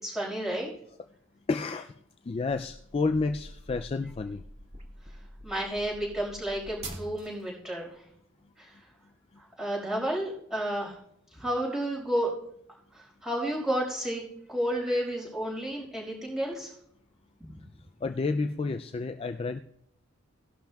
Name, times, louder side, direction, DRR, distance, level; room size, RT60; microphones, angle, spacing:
voice 1, 0.0-0.7 5.4-8.0 8.6-8.8 9.4-11.0 11.3-12.3 12.9-14.2 14.5-16.7, right 1 dB, ahead, -4 dB, 5.0 m, -31 dB
voice 2, 1.5-1.9 2.3-4.4 18.0-19.6, left 3 dB, 30° left, 8 dB, 0.3 m, -30 dB
sound 1, 2.6-7.5, right 1 dB, 35° right, 1.9 m, -45 dB
18.5 x 11.5 x 2.3 m, 0.70 s
head